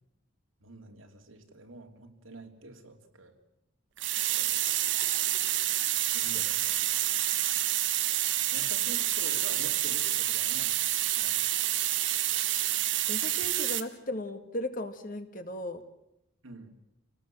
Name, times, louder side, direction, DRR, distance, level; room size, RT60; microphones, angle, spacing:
voice 1, 0.6-3.3 6.2-6.7 8.5-10.8 11.1-11.5 16.4-16.7, right 2 dB, 90° right, 3 dB, 3.0 m, -47 dB
sound 1, 4.0-13.8, right 13 dB, 65° right, 1.3 m, -28 dB
voice 2, 6.1-6.5 13.1-15.8, left 1 dB, 40° left, 8 dB, 1.9 m, -37 dB
28.5 x 19.0 x 7.7 m, 0.86 s
head